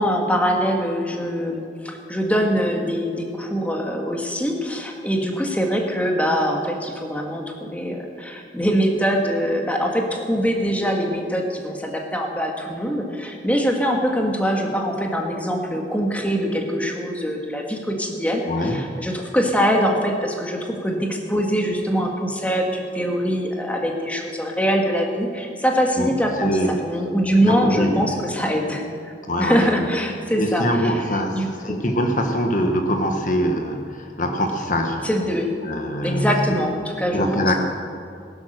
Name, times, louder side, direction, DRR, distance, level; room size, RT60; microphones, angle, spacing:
voice 1, 0.0-28.8 29.4-31.8 35.0-35.5 36.0-37.6, equal, 10° left, 1 dB, 1.8 m, -23 dB
voice 2, 18.5-18.8 26.0-26.1 26.4-26.7 27.4-28.1 29.3-29.6 30.4-31.3 31.6-35.1 35.6-36.6 37.1-37.5, equal, 45° left, 4 dB, 1.4 m, -23 dB
19.0 x 11.0 x 6.7 m, 2.4 s
head